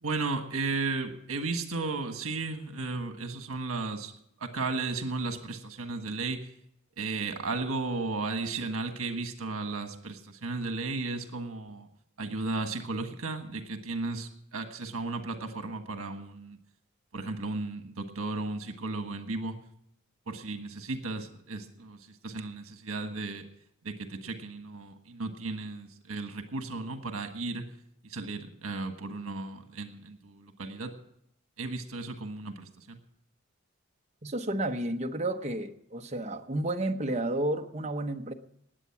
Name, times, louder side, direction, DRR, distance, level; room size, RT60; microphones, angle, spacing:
voice 1, 0.0-4.1 4.4-6.5 7.0-11.9 12.2-16.6 17.1-19.6 20.3-22.0 22.2-23.4 23.8-27.7 28.0-30.9 31.6-33.0, right 3 dB, 80° right, 1.5 m, -34 dB
voice 2, 34.2-38.3, right 1 dB, 30° right, 0.9 m, -31 dB
19.5 x 8.2 x 5.8 m
head